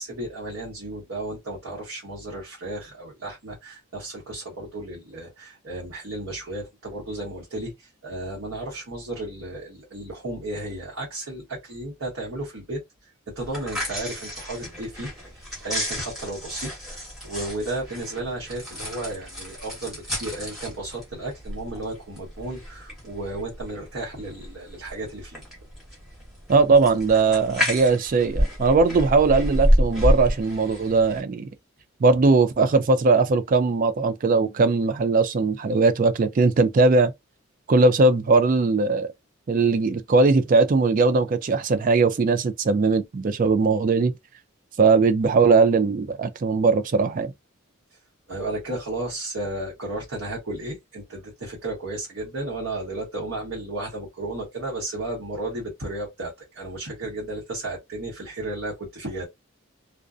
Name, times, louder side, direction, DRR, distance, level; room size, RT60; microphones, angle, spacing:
voice 1, 0.0-12.8 13.3-25.4 48.3-59.2, right 2 dB, 70° right, 1.0 m, -33 dB
sound 1, 13.4-31.2, equal, ahead, 1.1 m, -29 dB
voice 2, 26.5-31.5 32.0-37.1 37.7-39.1 39.5-44.1 44.8-47.3, right 3 dB, 40° right, 0.3 m, -19 dB
2.5 x 2.1 x 2.4 m
head